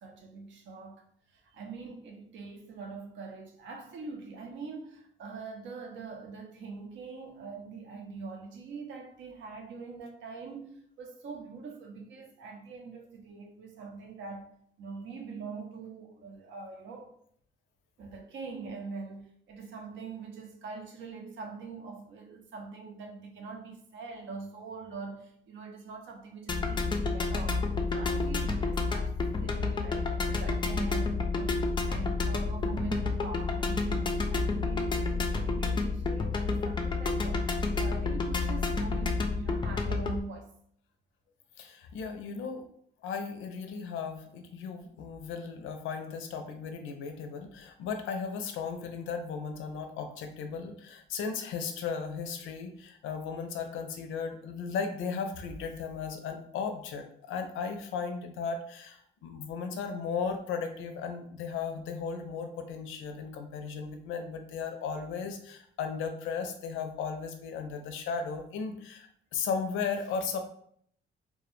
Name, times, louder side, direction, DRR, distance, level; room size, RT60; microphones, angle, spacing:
voice 1, 0.0-14.5 14.8-17.1 18.0-40.5, right 4 dB, 70° right, 0.5 m, -43 dB
sound 1, 26.5-40.2, left 3 dB, 25° left, 0.3 m, -30 dB
voice 2, 41.6-42.7 43.0-70.4, left 5 dB, 85° left, 0.5 m, -36 dB
2.1 x 2.1 x 3.0 m
cardioid pair, 90°, 20 cm